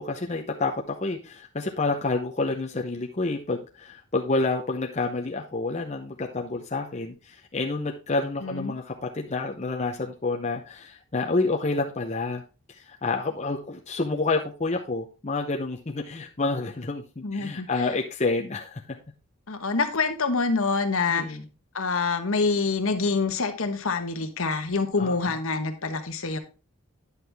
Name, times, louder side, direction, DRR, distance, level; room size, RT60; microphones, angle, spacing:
voice 1, 0.0-12.4 12.7-19.0 21.1-21.4 25.0-25.1, left 3 dB, 30° left, 1 dB, 0.7 m, -29 dB
voice 2, 8.4-8.7 17.2-17.9 19.5-21.4 21.7-26.4, left 4 dB, 65° left, 7 dB, 1.1 m, -26 dB
9.6 x 6.3 x 3.4 m, 0.32 s
head